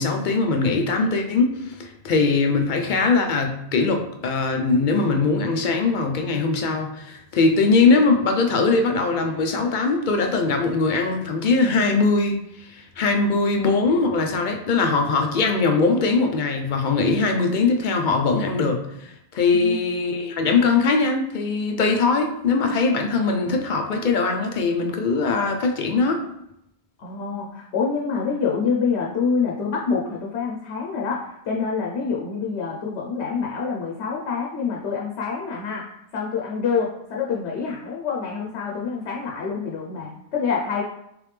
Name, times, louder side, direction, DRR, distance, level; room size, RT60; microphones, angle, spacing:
voice 1, 0.0-26.2, left 4 dB, 60° left, 3 dB, 0.6 m, -21 dB
voice 2, 27.0-40.8, left 5 dB, 85° left, -2 dB, 0.9 m, -26 dB
3.4 x 3.3 x 3.2 m, 0.80 s
omnidirectional pair, 1.1 m